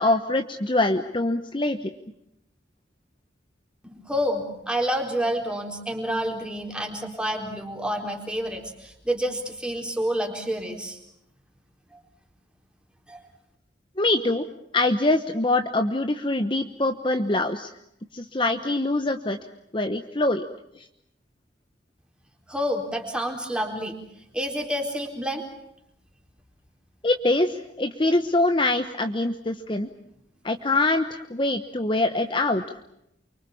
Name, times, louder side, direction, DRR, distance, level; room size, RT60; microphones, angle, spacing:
voice 1, 0.0-1.9 14.0-14.4 14.7-17.7 18.1-19.4 19.7-20.4 20.8-20.9 27.0-29.9 30.4-32.6, left 2 dB, 25° left, 6 dB, 1.1 m, -24 dB
voice 2, 3.8-11.0 13.1-13.2 22.5-24.0 24.3-25.4, equal, 5° right, 2 dB, 4.1 m, -28 dB
29.0 x 24.0 x 7.2 m, 0.79 s
head